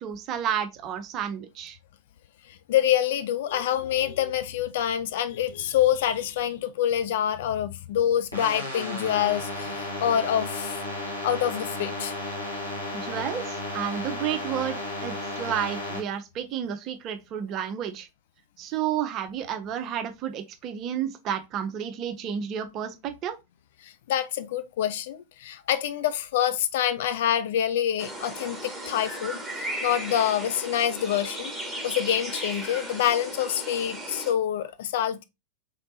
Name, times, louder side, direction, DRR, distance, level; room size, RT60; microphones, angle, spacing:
voice 1, 0.0-1.8 12.9-18.1 18.6-23.4, right 9 dB, 35° right, 0.7 m, -31 dB
voice 2, 2.7-10.8 11.2-12.1 23.8-31.5 31.8-35.2, left 10 dB, 55° left, 0.4 m, -26 dB
sound 1, 8.3-16.0, left 1 dB, 80° left, 1.2 m, -33 dB
sound 2, 28.0-34.3, right 1 dB, ahead, 1.3 m, -36 dB
3.9 x 3.3 x 2.8 m
figure-of-eight pair, 90°, 0 cm